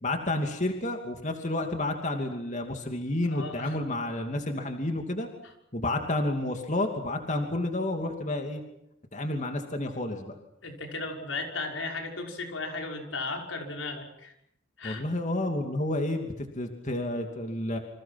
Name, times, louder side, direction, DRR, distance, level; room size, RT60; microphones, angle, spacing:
voice 1, 0.0-5.3 5.7-8.6 9.1-10.3 14.8-17.8, left 1 dB, 40° left, 4 dB, 2.8 m, -30 dB
voice 2, 3.3-3.8 10.6-14.3 14.8-15.0, left 3 dB, 90° left, 2 dB, 6.0 m, -35 dB
29.5 x 26.5 x 6.1 m, 0.78 s
head